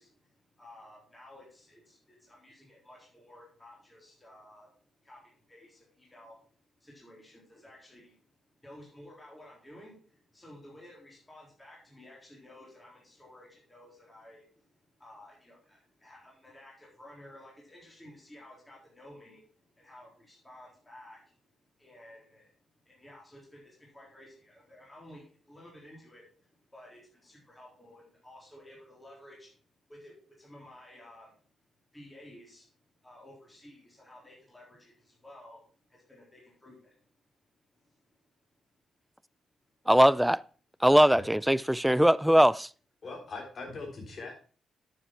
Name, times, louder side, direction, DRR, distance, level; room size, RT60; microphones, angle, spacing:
voice 1, 0.0-4.7 5.0-6.5 6.8-21.4 21.8-29.6 29.9-31.5 31.9-37.0 37.8-38.0, left 1 dB, 15° left, 3.6 m, -53 dB
voice 2, 39.9-40.4 40.8-42.7, equal, 5° right, 0.3 m, -21 dB
voice 3, 43.0-44.4, left 3 dB, 45° left, 3.6 m, -41 dB
9.2 x 7.0 x 4.5 m
cardioid pair, 105°, 0 cm